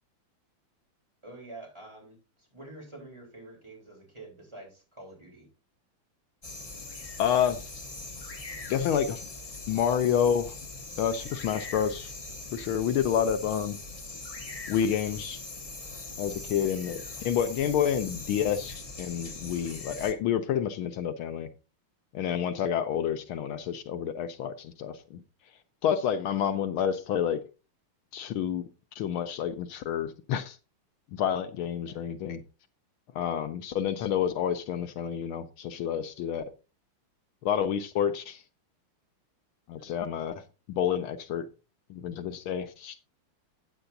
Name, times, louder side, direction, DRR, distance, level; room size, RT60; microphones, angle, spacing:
voice 1, 1.2-5.5 31.8-32.0 39.8-39.9, right 2 dB, 10° right, 3.7 m, -47 dB
sound 1, 6.4-20.1, left 3 dB, 40° left, 0.5 m, -41 dB
voice 2, 7.2-7.8 8.7-9.3 9.7-10.6 11.0-12.1 12.5-13.8 14.7-15.4 16.2-21.5 22.1-25.2 25.8-27.4 28.1-28.6 29.0-30.6 31.1-32.4 33.1-36.4 37.4-38.4 39.7-40.4 40.7-41.5 41.9-43.0, left 8 dB, 80° left, 1.6 m, -29 dB
13.0 x 9.0 x 2.6 m
omnidirectional pair, 2.4 m